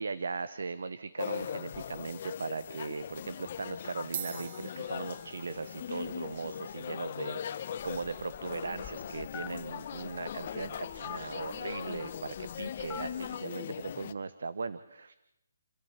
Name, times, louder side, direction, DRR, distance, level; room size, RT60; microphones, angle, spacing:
voice 1, 0.0-15.2, right 4 dB, 70° right, 13 dB, 1.0 m, -39 dB
sound 1, 1.2-14.1, left 9 dB, 35° left, 1.0 m, -40 dB
sound 2, 4.1-12.7, right 8 dB, 35° right, 0.9 m, -49 dB
Telephone, 8.0-13.3, left 11 dB, 15° left, 0.7 m, -48 dB
28.5 x 12.5 x 8.2 m, 0.85 s
hypercardioid pair, 165°, 0 cm